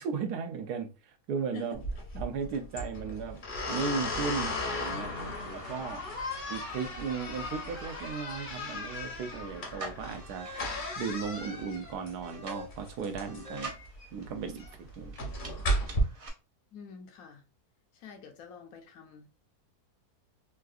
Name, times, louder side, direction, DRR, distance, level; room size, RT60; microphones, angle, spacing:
voice 1, 0.0-1.8 2.1-6.0 6.5-10.5 11.0-13.8 14.1-15.1, right 6 dB, 80° right, 1.2 m, -36 dB
voice 2, 1.5-1.9 16.7-17.4 17.9-19.3, left 6 dB, 70° left, 1.1 m, -47 dB
sound 1, 1.7-16.0, left 1 dB, 45° left, 0.7 m, -36 dB
sound 2, 3.3-16.3, right 1 dB, 65° right, 0.3 m, -48 dB
3.7 x 2.4 x 2.3 m
omnidirectional pair, 1.7 m